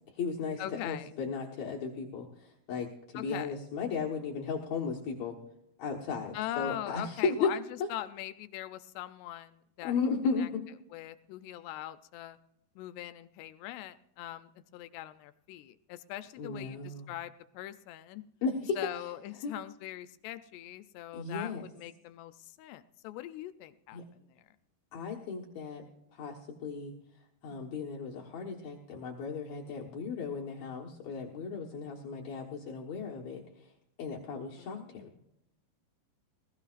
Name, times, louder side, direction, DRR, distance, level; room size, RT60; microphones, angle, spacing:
voice 1, 0.1-5.4 5.8-7.5 7.8-7.9 9.8-10.6 16.4-17.1 18.4-18.9 19.4-19.5 21.1-21.6 23.9-24.0 24.9-25.8 26.1-26.9 27.4-33.7 34.0-35.1, left 5 dB, 60° left, -2 dB, 1.9 m, -35 dB
voice 2, 0.6-1.1 3.2-3.5 6.3-7.6 7.9-9.9 10.4-10.5 10.9-12.4 12.8-18.2 18.8-24.4 27.5-27.7 34.6-35.1, left 14 dB, 85° left, 12 dB, 2.7 m, -42 dB
20.5 x 15.0 x 2.5 m, 0.80 s
omnidirectional pair, 4.8 m